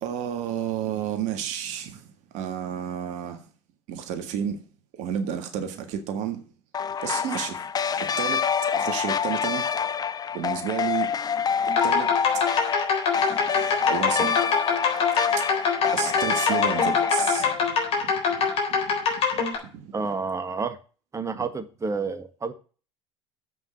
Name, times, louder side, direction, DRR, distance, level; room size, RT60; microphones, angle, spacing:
voice 1, 0.0-2.0 2.3-3.4 3.9-4.6 5.0-6.4 7.0-7.6 8.2-8.4 8.7-9.7 10.3-11.1 11.8-12.1 13.9-14.3 15.9-17.5 18.0-18.1, right 9 dB, 55° right, 1.8 m, -30 dB
sound 1, 6.7-17.5, left 7 dB, 25° left, 0.7 m, -26 dB
sound 2, 11.7-19.6, left 5 dB, 40° left, 3.7 m, -24 dB
voice 2, 19.9-20.8 21.1-22.5, right 4 dB, 20° right, 1.4 m, -29 dB
7.7 x 6.0 x 7.9 m
figure-of-eight pair, 70°, 15 cm